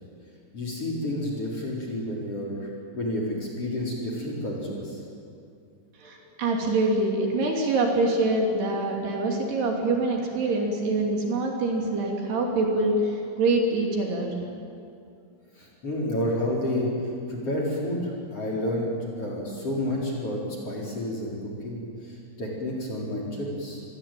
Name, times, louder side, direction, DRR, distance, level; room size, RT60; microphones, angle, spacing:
voice 1, 0.5-5.0 15.5-16.9 17.3-23.8, left 1 dB, 30° left, -2 dB, 4.8 m, -30 dB
voice 2, 6.0-14.3, right 2 dB, 60° right, 0 dB, 4.7 m, -25 dB
27.5 x 21.5 x 9.2 m, 2.5 s
omnidirectional pair, 5.7 m